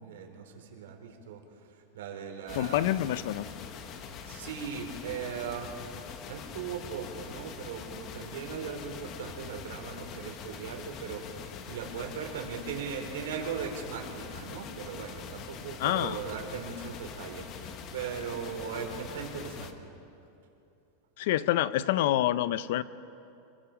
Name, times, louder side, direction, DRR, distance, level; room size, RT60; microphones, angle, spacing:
voice 1, 0.0-1.4 1.9-3.0 4.3-5.7 6.3-19.7, right 6 dB, 90° right, 3 dB, 3.8 m, -38 dB
voice 2, 2.5-3.5 15.8-16.2 21.2-22.8, left 13 dB, 60° left, 16 dB, 0.6 m, -27 dB
sound 1, 2.5-19.7, left 6 dB, 30° left, 1.1 m, -43 dB
26.0 x 22.5 x 5.1 m, 2.8 s
supercardioid pair, 170°, 0 cm